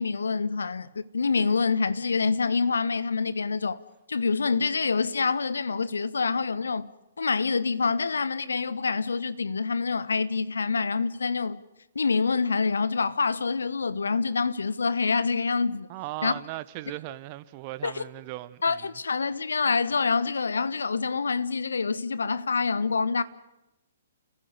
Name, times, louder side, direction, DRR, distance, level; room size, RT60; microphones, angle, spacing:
voice 1, 0.0-3.8 4.1-6.9 7.2-11.6 11.9-15.9 16.2-16.3 17.8-18.0 18.6-23.2, left 4 dB, 65° left, 1.2 m, -26 dB
voice 2, 15.9-18.9, right 17 dB, 30° right, 0.9 m, -38 dB
29.5 x 15.5 x 9.7 m
figure-of-eight pair, 120°, 0 cm